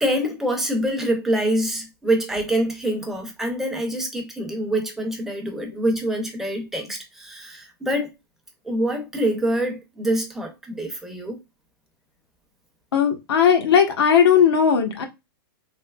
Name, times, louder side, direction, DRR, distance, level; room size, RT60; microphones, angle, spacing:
voice 1, 0.0-8.1 8.6-11.4, right 1 dB, 5° right, 0.6 m, -25 dB
voice 2, 12.9-15.0, left 7 dB, 85° left, 1.0 m, -17 dB
3.4 x 2.8 x 2.2 m
hypercardioid pair, 155°, 13 cm